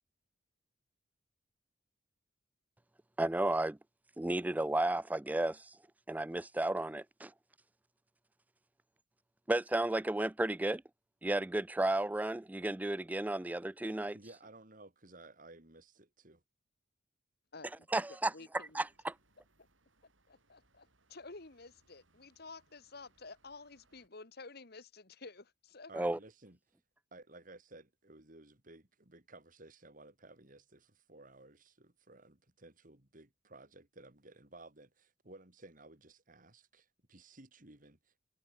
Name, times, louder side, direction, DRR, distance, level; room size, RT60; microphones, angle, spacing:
voice 1, 3.2-3.8 4.2-5.7 6.1-7.3 9.5-10.8 11.2-14.2 17.9-19.1 25.9-26.2, right 1 dB, 10° right, 0.3 m, -33 dB
voice 2, 14.1-16.4 25.9-26.6 27.1-38.1, right 2 dB, 45° right, 3.0 m, -56 dB
voice 3, 17.5-18.9 20.3-25.9, left 3 dB, 55° left, 1.8 m, -52 dB
sound 1, 18.5-24.1, right 2 dB, 80° right, 7.9 m, -73 dB
head